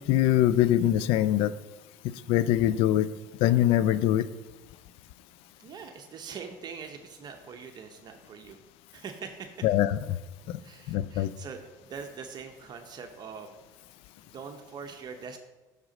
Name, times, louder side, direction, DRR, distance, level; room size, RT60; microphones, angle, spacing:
voice 1, 0.1-1.5 2.3-3.1 3.4-4.3 9.6-10.0 10.5-10.6 10.9-11.3, left 12 dB, 65° left, 16 dB, 0.4 m, -23 dB
voice 2, 5.6-8.6 8.9-9.5 10.6-13.5 14.2-15.4, right 6 dB, 40° right, 5 dB, 0.7 m, -43 dB
6.6 x 4.8 x 5.0 m, 1.1 s
hypercardioid pair, 80°, 10 cm